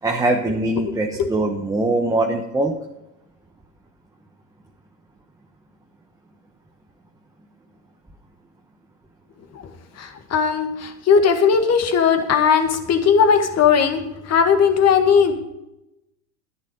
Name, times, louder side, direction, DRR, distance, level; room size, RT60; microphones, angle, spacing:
voice 1, 0.0-2.7, right 2 dB, 10° right, 2 dB, 1.1 m, -22 dB
voice 2, 10.0-14.0 14.3-15.4, left 6 dB, 35° left, 6 dB, 2.0 m, -17 dB
10.5 x 10.5 x 5.2 m, 0.93 s
hypercardioid pair, 105°, 45 cm